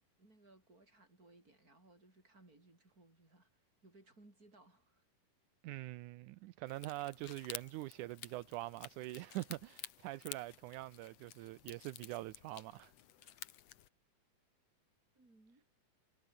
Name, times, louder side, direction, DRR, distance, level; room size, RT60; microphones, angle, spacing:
voice 1, 0.0-5.1 15.1-15.7, right 2 dB, 25° right, 7.1 m, -64 dB
voice 2, 5.6-12.9 13.2-13.3, right 18 dB, 80° right, 1.9 m, -44 dB
sound 1, 6.7-13.9, left 12 dB, 60° left, 2.0 m, -52 dB
omnidirectional pair, 4.0 m